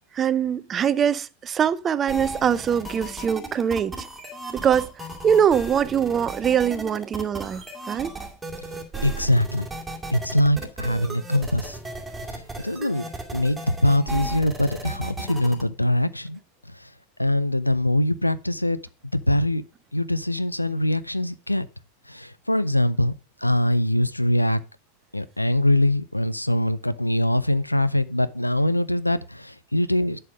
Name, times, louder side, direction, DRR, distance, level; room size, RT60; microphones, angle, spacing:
voice 1, 0.1-4.1 4.5-8.1, right 8 dB, 25° right, 0.5 m, -23 dB
sound 1, 2.1-15.6, right 2 dB, 5° right, 2.2 m, -35 dB
voice 2, 9.0-9.7 10.1-11.8 12.3-13.0 13.3-16.4 16.7-16.9 17.2-18.8 19.1-19.6 19.9-21.7 22.1-23.1 23.4-24.6 25.1-30.2, left 1 dB, 85° left, 0.5 m, -23 dB
11.0 x 5.6 x 4.9 m
figure-of-eight pair, 90°, 0 cm